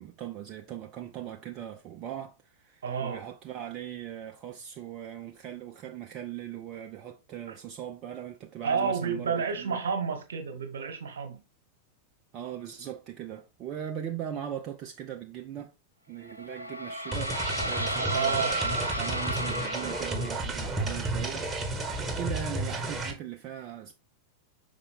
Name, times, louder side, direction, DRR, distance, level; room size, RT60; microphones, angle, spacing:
voice 1, 0.0-9.8 12.3-15.7 16.1-23.9, right 10 dB, 35° right, 0.6 m, -40 dB
voice 2, 2.8-3.2 7.5-7.6 8.6-11.4 18.1-18.6, right 6 dB, 65° right, 1.4 m, -30 dB
sound 1, 16.2-20.6, right 1 dB, 90° right, 0.7 m, -33 dB
sound 2, 17.1-23.1, right 2 dB, 15° right, 1.4 m, -32 dB
5.7 x 4.9 x 3.5 m
figure-of-eight pair, 90°, 0 cm